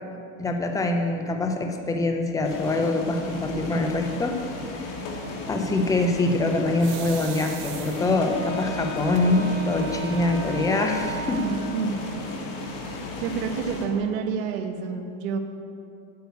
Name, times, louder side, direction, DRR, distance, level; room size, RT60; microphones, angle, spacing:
voice 1, 0.4-4.4 5.5-11.5, left 2 dB, 10° left, 4 dB, 0.6 m, -24 dB
sound 1, 2.4-13.8, left 2 dB, 50° left, 2.2 m, -35 dB
sound 2, 6.8-8.4 9.1-9.2 9.7-9.8 10.0-10.6, right 14 dB, 55° right, 0.8 m, -40 dB
Wind instrument woodwind instrument, 8.0-12.1, right 1 dB, 30° left, 2.1 m, -34 dB
voice 2, 11.4-12.0 13.2-15.4, right 6 dB, 75° right, 6 dB, 1.2 m, -28 dB
9.3 x 6.5 x 8.1 m, 2.5 s
supercardioid pair, 155°, 41 cm